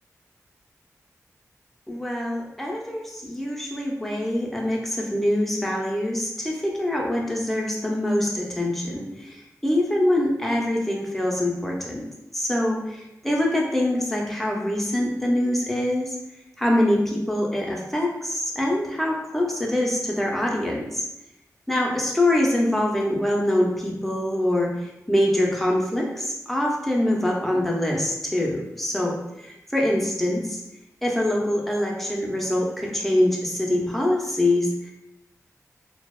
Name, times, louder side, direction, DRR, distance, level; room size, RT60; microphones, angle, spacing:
voice 1, 1.9-12.1 12.3-16.2 16.6-21.0 21.7-30.6 31.0-34.9, left 1 dB, 5° left, -2 dB, 0.5 m, -24 dB
2.7 x 2.0 x 2.2 m, 0.90 s
wide cardioid pair, 65°, 6 cm